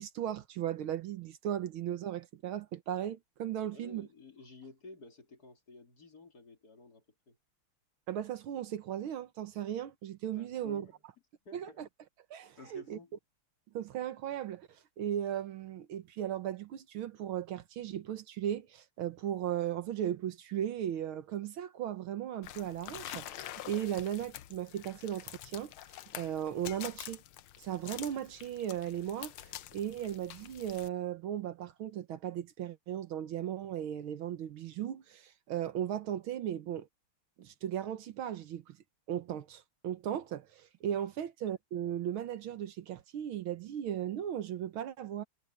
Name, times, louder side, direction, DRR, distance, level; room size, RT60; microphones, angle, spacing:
voice 1, 0.0-4.1 8.1-10.9 11.5-11.9 12.3-13.0 13.7-25.7 26.1-27.2 27.6-36.9 37.4-38.8 39.1-45.2, right 10 dB, 75° right, 1.8 m, -37 dB
voice 2, 3.7-7.4 10.4-11.0 11.5-11.9 12.6-13.1 40.9-41.0, left 3 dB, 45° left, 3.6 m, -53 dB
sound 1, 22.4-30.9, left 13 dB, 75° left, 1.6 m, -47 dB
omnidirectional pair, 2.4 m